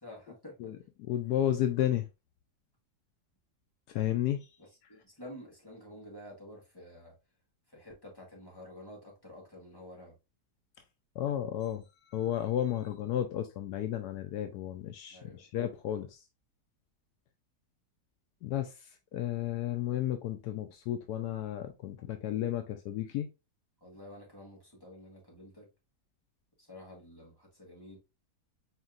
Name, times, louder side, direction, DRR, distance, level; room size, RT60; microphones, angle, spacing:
voice 1, 0.0-0.7 4.6-7.1 7.7-10.2 15.1-15.4 23.8-25.7 26.6-28.0, left 1 dB, 15° left, 1.4 m, -50 dB
voice 2, 0.6-2.1 3.9-4.5 11.2-16.2 18.4-23.3, left 11 dB, 80° left, 1.1 m, -33 dB
4.3 x 3.6 x 2.4 m
omnidirectional pair, 1.7 m